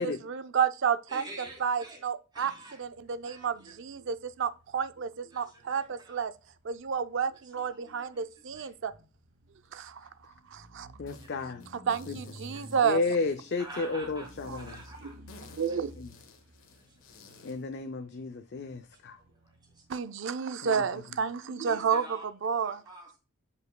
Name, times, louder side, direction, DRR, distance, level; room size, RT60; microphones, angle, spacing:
voice 1, 0.0-1.2 1.6-2.5 2.8-6.3 6.6-8.9 9.7-10.1 10.5-10.9 11.7-13.0 15.6-15.9 19.9-22.0 22.4-22.8, right 7 dB, 60° right, 0.4 m, -30 dB
voice 2, 1.1-2.0 2.3-2.8 3.2-3.8 5.3-6.2 7.3-8.7 11.0-11.5 12.2-12.8 13.6-14.3 14.6-15.2 15.7-15.8 16.8-17.5 18.9-20.0 21.6-22.3 22.6-23.1, right 1 dB, 20° right, 2.3 m, -49 dB
sound 1, 2.8-20.0, equal, 85° right, 2.0 m, -54 dB
voice 3, 11.0-11.6 12.1-12.2 12.8-14.8 16.0-16.1 17.4-19.2 20.6-20.8, left 3 dB, 50° left, 0.4 m, -32 dB
sound 2, 11.1-11.3 11.6-13.7 14.2-17.6, left 4 dB, 75° left, 1.3 m, -55 dB
8.0 x 5.3 x 2.2 m
head